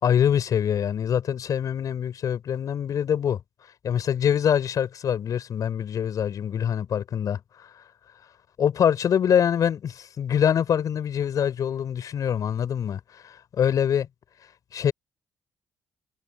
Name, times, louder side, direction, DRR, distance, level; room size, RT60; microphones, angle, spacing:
voice 1, 0.0-3.4 3.8-7.8 8.6-14.1 14.7-14.9, left 8 dB, 65° left, 5.0 m, -24 dB
supercardioid pair, 55°, 7 cm